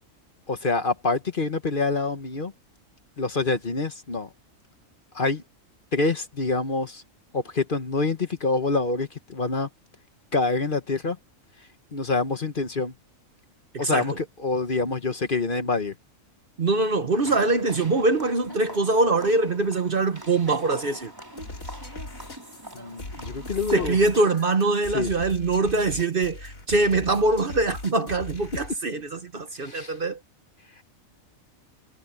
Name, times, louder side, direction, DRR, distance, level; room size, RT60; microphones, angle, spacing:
voice 1, 0.5-2.5 3.2-4.3 5.1-5.4 5.9-7.0 7.3-9.7 10.3-11.2 11.9-12.9 13.8-15.9 22.7-24.0 24.9-25.1 29.6-30.0, left 3 dB, 40° left, 1.3 m, -26 dB
voice 2, 13.7-14.1 16.6-21.1 23.7-30.2, right 3 dB, 45° right, 1.1 m, -23 dB
sound 1, 17.1-24.4, right 1 dB, 15° right, 4.3 m, -43 dB
sound 2, 21.4-28.8, left 2 dB, 75° left, 3.7 m, -39 dB
omnidirectional pair, 1.4 m